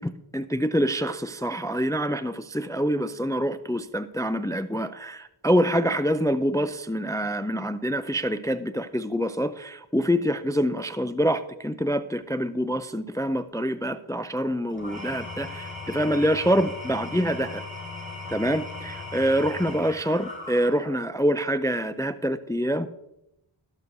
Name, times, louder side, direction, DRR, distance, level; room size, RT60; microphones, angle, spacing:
voice 1, 0.0-17.6 18.3-22.9, equal, 10° left, 12 dB, 0.3 m, -26 dB
Engine / Tools, 14.7-21.1, left 2 dB, 15° right, 3.7 m, -38 dB
17.5 x 6.2 x 2.6 m, 0.85 s
wide cardioid pair, 60°, 48 cm